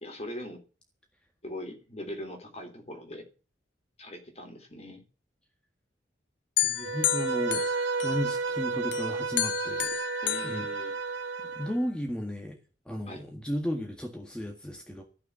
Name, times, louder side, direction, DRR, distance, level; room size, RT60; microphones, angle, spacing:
voice 1, 0.0-0.6 1.4-3.3 4.0-5.0 10.2-10.9 13.1-13.2, left 1 dB, 35° left, 3.3 m, -41 dB
sound 1, 6.6-8.5 8.9-11.4, left 13 dB, 75° left, 0.8 m, -32 dB
voice 2, 6.6-7.7 8.0-10.0 10.4-10.7 11.6-12.6 12.9-15.0, equal, 5° left, 1.7 m, -34 dB
Bowed string instrument, 6.8-11.7, right 4 dB, 90° right, 2.0 m, -32 dB
14.5 x 6.7 x 8.0 m
head